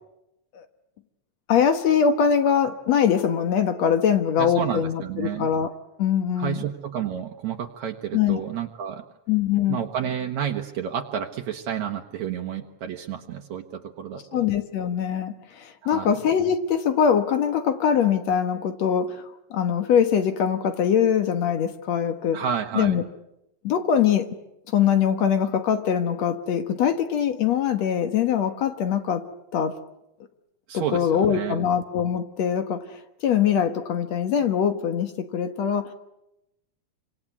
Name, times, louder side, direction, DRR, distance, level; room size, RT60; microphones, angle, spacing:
voice 1, 1.5-5.7 6.0-6.6 8.1-8.4 9.3-9.8 14.3-19.3 19.5-22.4 22.8-23.0 23.6-24.3 24.7-29.2 29.5-29.8 30.7-32.8 33.2-35.9, left 8 dB, 65° left, 8 dB, 2.4 m, -22 dB
voice 2, 4.4-5.5 6.4-9.0 9.7-14.5 15.8-16.1 22.3-23.0 30.7-31.6, right 8 dB, 70° right, 3 dB, 2.5 m, -30 dB
27.5 x 25.5 x 8.4 m, 0.90 s
omnidirectional pair, 3.4 m